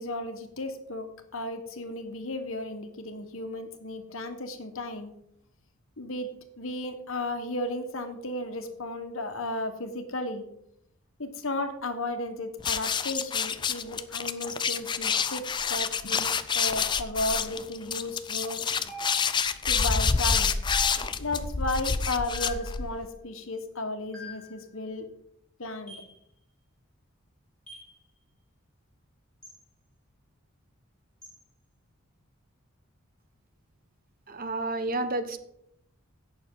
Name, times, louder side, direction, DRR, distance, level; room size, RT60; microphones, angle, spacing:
voice 1, 0.0-5.1 6.0-10.5 11.2-18.6 19.7-20.5 21.1-25.0 25.6-26.0, left 2 dB, 65° left, 7 dB, 1.3 m, -34 dB
sound 1, 12.6-23.1, left 6 dB, 20° left, 0.4 m, -28 dB
sound 2, 18.9-19.6 20.7-21.4 22.3-22.8 24.1-24.6 25.9-26.2 27.7-27.9 29.4-29.6 31.2-31.4, right 1 dB, 5° left, 4.3 m, -43 dB
voice 2, 34.3-35.4, right 2 dB, 40° right, 10 dB, 0.8 m, -30 dB
16.5 x 6.3 x 3.8 m, 0.75 s
head